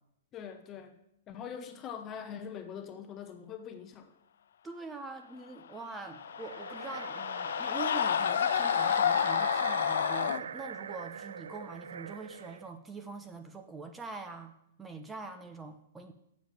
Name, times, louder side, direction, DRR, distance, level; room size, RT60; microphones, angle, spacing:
voice 1, 0.3-1.0 1.3-4.1, left 7 dB, 25° left, 7 dB, 0.9 m, -43 dB
voice 2, 4.6-14.5 14.8-16.1, right 4 dB, 10° right, 7 dB, 0.8 m, -44 dB
sound 1, 5.9-10.4, left 9 dB, 75° left, 0.3 m, -29 dB
sound 2, 6.3-12.7, right 7 dB, 85° right, 0.4 m, -41 dB
7.3 x 5.7 x 7.3 m, 0.76 s
hypercardioid pair, 135°, 0 cm